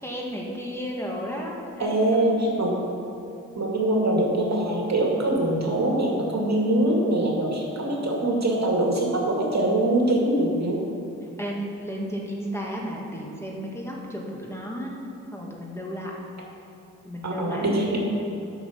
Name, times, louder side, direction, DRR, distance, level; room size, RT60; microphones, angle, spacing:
voice 1, 0.0-2.6 11.4-15.0 15.3-16.1 17.0-18.0, equal, 10° left, -2 dB, 2.2 m, -33 dB
voice 2, 1.8-2.8 3.6-10.8 17.2-18.0, right 1 dB, 55° right, -2 dB, 2.3 m, -23 dB
9.8 x 6.3 x 7.2 m, 2.8 s
cardioid pair, 50°, 32 cm